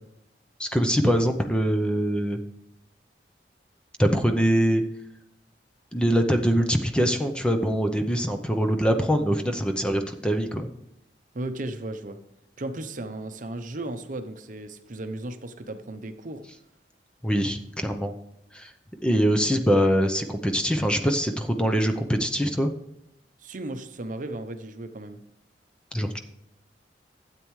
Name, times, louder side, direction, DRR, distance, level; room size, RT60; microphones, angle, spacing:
voice 1, 0.6-2.4 4.0-4.8 5.9-10.7 17.2-18.1 18.5-18.7 19.0-22.7 25.9-26.2, equal, 5° left, 5 dB, 0.7 m, -23 dB
voice 2, 11.3-12.2 12.6-16.4 23.4-25.2, right 2 dB, 50° right, 8 dB, 0.8 m, -35 dB
12.5 x 8.4 x 3.2 m, 0.81 s
head